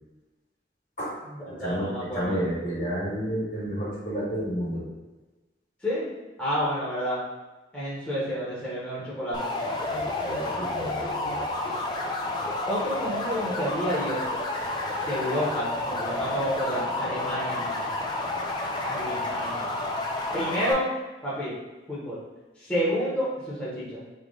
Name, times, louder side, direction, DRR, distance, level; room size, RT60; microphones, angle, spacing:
voice 1, 1.4-2.4 5.8-6.1 6.4-7.2 7.7-9.5 12.7-14.2 15.0-17.9 18.8-19.7 20.3-20.9 21.2-21.5 21.9-22.2 22.6-24.0, equal, 5° left, -10 dB, 1.0 m, -29 dB
voice 2, 2.1-4.8 9.8-11.4, equal, 45° left, -6 dB, 1.5 m, -31 dB
sound 1, 9.3-20.7, left 2 dB, 25° left, 0.4 m, -30 dB
3.2 x 3.0 x 3.9 m, 1.2 s
head